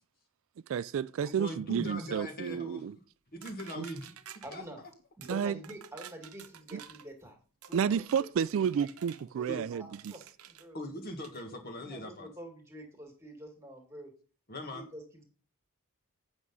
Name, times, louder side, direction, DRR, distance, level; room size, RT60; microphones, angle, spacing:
voice 1, 0.7-3.0 3.8-3.9 5.3-5.5 6.7-6.8 7.7-10.1, right 7 dB, 65° right, 0.3 m, -31 dB
voice 2, 1.2-2.9 3.3-4.1 4.5-4.6 9.5-9.6 10.7-12.3 14.5-14.8, left 1 dB, 45° left, 1.6 m, -40 dB
sound 1, 3.4-4.6 5.2-5.4 5.6-7.1 7.6-9.3 9.9-10.7 11.2-11.5, right 9 dB, 80° right, 0.8 m, -50 dB
voice 3, 4.4-4.8 5.2-7.4 7.7-8.0 8.4-8.9 9.4-10.8 11.8-14.1 14.7-15.2, right 1 dB, 15° right, 2.2 m, -47 dB
8.6 x 6.2 x 5.4 m
head